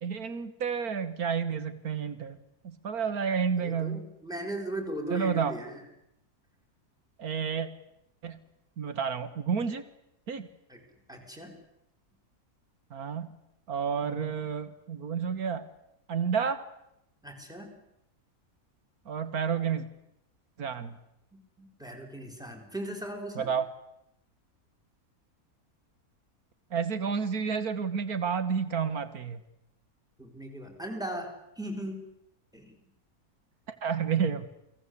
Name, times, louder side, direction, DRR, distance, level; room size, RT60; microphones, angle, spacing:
voice 1, 0.0-2.4 2.6-4.1 5.1-5.5 7.2-7.7 8.2-8.4 8.8-9.8 10.3-10.5 12.9-13.3 13.7-15.6 16.1-16.6 19.1-19.9 20.6-21.0 23.4-23.7 26.7-29.4 33.7-34.5, right 6 dB, 80° right, 12 dB, 1.9 m, -30 dB
voice 2, 3.6-5.8 10.7-10.8 11.1-11.6 14.0-14.3 17.2-17.7 21.6-23.5 30.2-32.1 32.5-32.7, right 1 dB, ahead, 4 dB, 5.7 m, -38 dB
29.0 x 20.5 x 8.4 m, 0.83 s
omnidirectional pair, 1.6 m